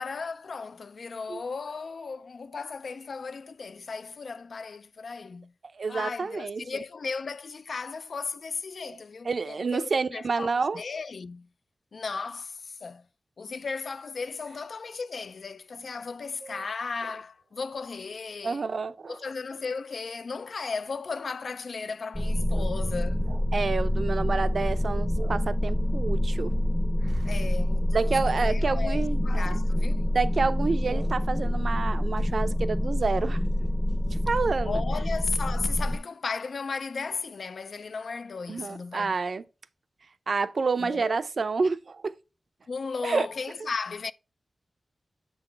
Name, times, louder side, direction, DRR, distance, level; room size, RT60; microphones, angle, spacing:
voice 1, 0.0-5.5 5.9-11.5 11.9-13.0 13.4-18.7 19.1-23.3 27.2-30.1 34.7-39.2 40.8-41.2 42.7-44.1, left 4 dB, 65° left, 0.3 m, -35 dB
voice 2, 5.7-6.6 9.2-10.8 16.4-16.6 18.4-19.2 22.5-22.6 23.5-26.5 27.0-27.2 27.9-29.6 30.1-33.4 34.1-34.8 38.5-39.4 40.3-42.1 43.0-43.3, right 4 dB, 60° right, 0.5 m, -29 dB
sound 1, 22.1-36.0, left 1 dB, 10° left, 0.6 m, -26 dB
7.5 x 3.9 x 4.5 m
wide cardioid pair, 110°, 0 cm